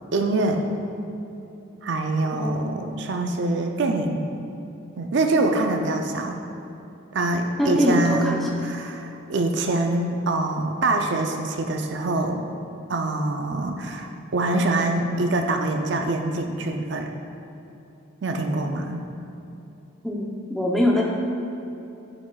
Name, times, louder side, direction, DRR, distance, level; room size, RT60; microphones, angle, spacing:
voice 1, 0.1-0.6 1.8-4.2 5.0-6.4 7.1-12.4 12.9-17.1 18.2-19.0, right 2 dB, 55° right, 4 dB, 0.5 m, -24 dB
voice 2, 2.3-2.7 7.6-8.4 20.0-21.0, left 1 dB, ahead, -3 dB, 0.7 m, -22 dB
9.4 x 5.0 x 2.3 m, 2.9 s
head